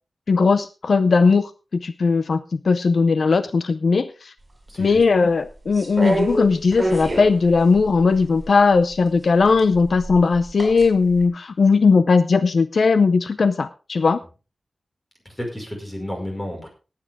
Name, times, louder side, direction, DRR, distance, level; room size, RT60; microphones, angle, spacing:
voice 1, 0.3-4.3 4.8-14.2, left 4 dB, 70° left, 13 dB, 0.6 m, -18 dB
voice 2, 4.7-5.1 15.3-16.7, left 1 dB, 10° left, 2 dB, 5.2 m, -31 dB
sound 1, 5.7-8.5 9.4-10.9 11.2-11.3, right 1 dB, 25° right, 5.6 m, -26 dB
18.0 x 8.7 x 3.5 m, 0.32 s
wide cardioid pair, 110°, 0 cm